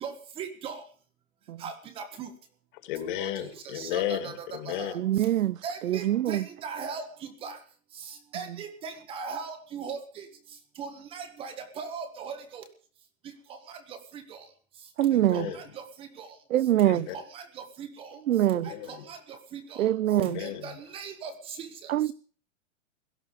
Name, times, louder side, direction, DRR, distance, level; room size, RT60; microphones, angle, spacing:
voice 1, 0.0-0.8 1.6-2.3 3.1-3.3 3.6-5.0 5.6-7.6 8.0-10.3 10.8-12.6 13.5-14.4 15.3-16.3 17.1-18.2 18.6-19.9 20.4-21.9, right 6 dB, 15° right, 1.2 m, -39 dB
voice 2, 2.8-4.9 15.0-15.6 16.8-17.2 18.5-19.1 20.2-20.8, left 11 dB, 35° left, 2.5 m, -34 dB
voice 3, 5.0-5.6 5.8-6.4 15.0-15.5 16.5-17.1 18.3-18.7 19.8-20.4 21.9-22.1, right 13 dB, 80° right, 0.8 m, -24 dB
17.5 x 13.5 x 5.2 m
hypercardioid pair, 170°, 40 cm